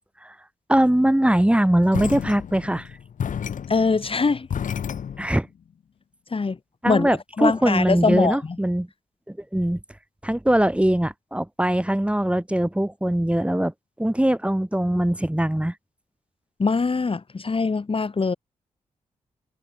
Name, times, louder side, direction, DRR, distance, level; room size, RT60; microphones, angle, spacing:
voice 1, 0.7-2.9 5.2-5.5 6.8-8.9 9.3-9.8 10.2-13.7 14.0-15.7, right 1 dB, 10° right, 3.2 m, -21 dB
sound 1, 1.9-5.4, left 8 dB, 75° left, 6.6 m, -31 dB
voice 2, 3.7-4.5 6.3-6.6 6.9-8.4 16.6-18.3, left 4 dB, 45° left, 2.4 m, -22 dB
supercardioid pair, 45°, 14 cm